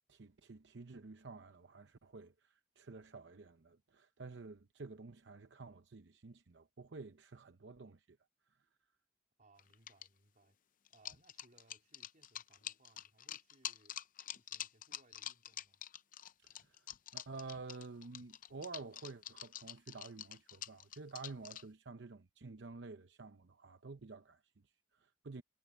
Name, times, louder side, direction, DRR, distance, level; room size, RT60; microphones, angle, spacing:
voice 1, 0.1-8.2 8.5-8.6 16.4-25.4, right 3 dB, 75° right, 0.7 m, -51 dB
voice 2, 9.4-10.6 10.9-14.0 14.3-15.8, right 2 dB, 45° right, 3.7 m, -68 dB
sound 1, 9.6-10.1 10.9-21.6, left 11 dB, 50° left, 0.6 m, -46 dB
head